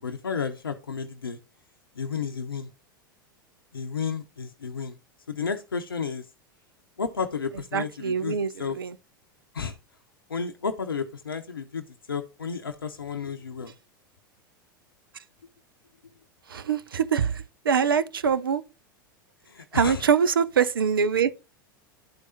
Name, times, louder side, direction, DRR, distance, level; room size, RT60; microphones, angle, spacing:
voice 1, 0.0-1.4 2.0-2.7 3.7-5.0 5.3-6.3 7.0-8.8 9.5-9.8 10.3-13.7 19.5-20.1, left 6 dB, 85° left, 0.6 m, -32 dB
voice 2, 7.7-9.0 16.5-18.6 19.7-21.3, right 7 dB, 80° right, 0.5 m, -24 dB
12.0 x 4.7 x 2.6 m
figure-of-eight pair, 85°, 12 cm